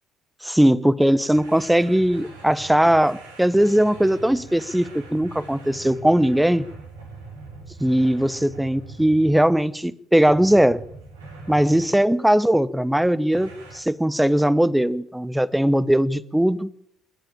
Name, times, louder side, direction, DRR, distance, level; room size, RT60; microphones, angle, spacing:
voice 1, 0.4-6.6 7.8-10.8 11.5-16.7, right 1 dB, 5° right, 1.0 m, -19 dB
sound 1, 1.3-9.8 10.2-12.0 13.3-13.8, right 3 dB, 75° right, 6.2 m, -42 dB
27.5 x 11.5 x 8.9 m
figure-of-eight pair, 55°, 0 cm